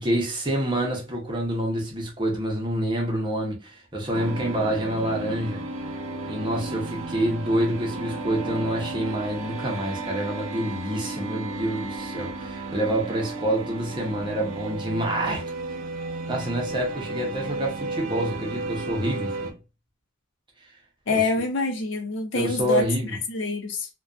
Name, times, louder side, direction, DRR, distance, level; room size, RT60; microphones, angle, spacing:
voice 1, 0.0-5.6 6.3-15.5 16.3-19.5 21.1-21.2 22.3-23.2, right 1 dB, 25° right, 0.7 m, -27 dB
sound 1, 4.1-19.5, right 2 dB, 85° right, 0.4 m, -34 dB
voice 2, 21.1-22.8 23.3-23.9, left 3 dB, 65° left, 0.5 m, -25 dB
2.5 x 2.2 x 2.3 m
head